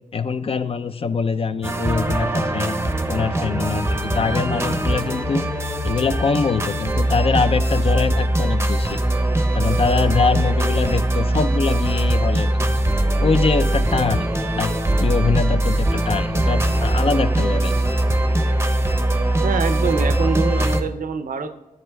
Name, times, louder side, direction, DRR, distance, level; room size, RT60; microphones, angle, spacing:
voice 1, 0.1-2.8 3.1-5.5 5.8-9.0 9.5-12.6 13.2-14.3 14.6-17.7, left 5 dB, 40° left, 12 dB, 0.4 m, -23 dB
sound 1, 1.6-20.8, right 1 dB, 15° right, 0.6 m, -21 dB
voice 2, 19.4-21.5, right 5 dB, 75° right, 10 dB, 0.5 m, -24 dB
10.5 x 7.8 x 2.2 m, 0.99 s
wide cardioid pair, 90°, 14 cm